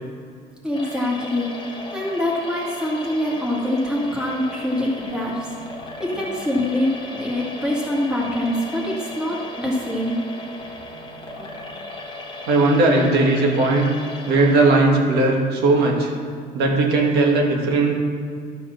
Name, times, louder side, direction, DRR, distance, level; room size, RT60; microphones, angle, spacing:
voice 1, 0.6-1.5 1.9-5.5 6.0-10.2, left 1 dB, 5° right, -5 dB, 2.0 m, -24 dB
sound 1, 0.7-14.8, left 2 dB, 25° left, 1.4 m, -36 dB
voice 2, 12.5-13.9 14.3-16.1 16.5-17.9, right 2 dB, 75° right, 0 dB, 1.8 m, -18 dB
12.0 x 4.3 x 6.5 m, 2.1 s
cardioid pair, 110°, 17 cm